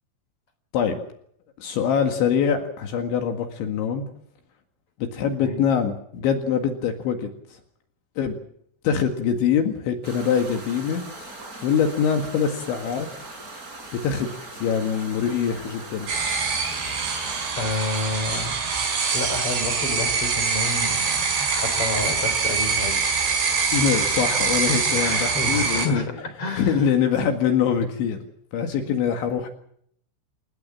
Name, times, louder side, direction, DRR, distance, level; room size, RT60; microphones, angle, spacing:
voice 1, 1.6-4.1 5.0-7.3 8.2-8.4 8.8-13.1 13.9-16.1 23.7-26.1 26.6-28.2 28.5-29.5, left 7 dB, 70° left, 5 dB, 4.1 m, -24 dB
sound 1, 10.0-17.5, right 2 dB, 20° right, 4.4 m, -40 dB
sound 2, 16.1-25.9, right 5 dB, 55° right, 7.0 m, -24 dB
voice 2, 17.6-18.7 19.1-23.0 23.4-23.5 24.9-26.9 27.1-27.3 28.8-28.9, left 3 dB, 30° left, 8 dB, 4.3 m, -30 dB
29.0 x 16.5 x 7.5 m, 0.67 s
omnidirectional pair, 5.8 m